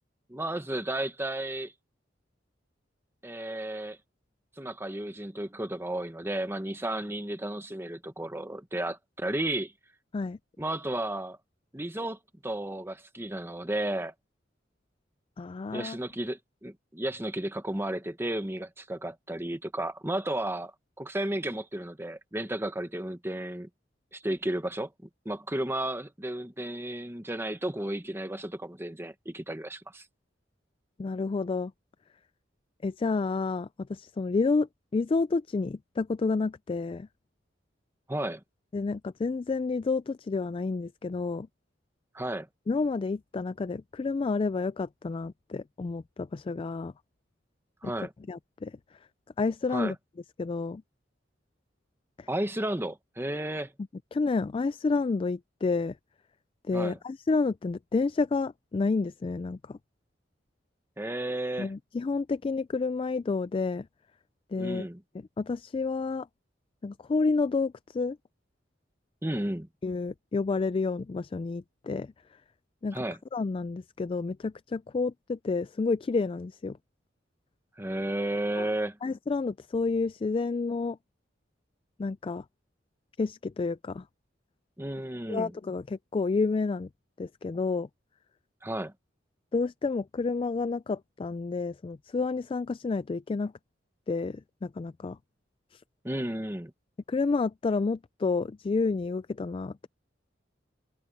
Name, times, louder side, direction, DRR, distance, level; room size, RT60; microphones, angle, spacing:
voice 1, 0.3-1.7 3.2-4.0 4.6-9.7 10.6-11.4 11.7-14.1 15.7-23.7 24.1-24.9 25.2-30.0 38.1-38.4 42.1-42.5 47.8-48.1 49.7-49.9 52.3-53.7 56.7-57.0 61.0-61.7 64.6-65.0 69.2-69.7 72.9-73.2 77.8-79.0 84.8-85.5 88.6-88.9 96.0-96.7, right 1 dB, 15° right, 1.3 m, -33 dB
voice 2, 15.4-16.0 31.0-31.7 32.8-37.1 38.7-41.5 42.7-46.9 47.8-47.9 48.3-48.7 49.4-50.0 50.4-50.8 52.2-52.3 54.1-56.0 56.7-59.8 61.6-63.9 64.5-64.9 65.4-66.3 66.8-68.2 69.8-72.1 72.8-73.0 73.3-76.8 78.6-78.7 79.0-81.0 82.0-82.4 83.2-84.0 85.3-86.9 87.2-87.9 89.5-93.5 94.1-95.2 95.7-95.8 97.1-99.9, left 4 dB, 30° left, 0.3 m, -30 dB
head